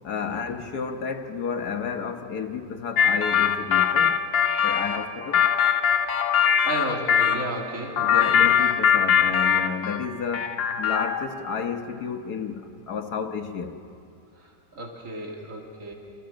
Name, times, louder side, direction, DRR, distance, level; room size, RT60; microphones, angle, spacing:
voice 1, 0.0-4.2 4.6-5.5 8.0-13.8, left 6 dB, 60° left, 6 dB, 1.6 m, -31 dB
sound 1, 3.0-7.4 8.0-10.1 10.3-11.3, left 8 dB, 80° left, 1.7 m, -21 dB
voice 2, 6.4-8.3 14.7-15.9, right 1 dB, 45° right, -1 dB, 3.0 m, -33 dB
28.0 x 14.5 x 7.2 m, 2.5 s
omnidirectional pair, 2.0 m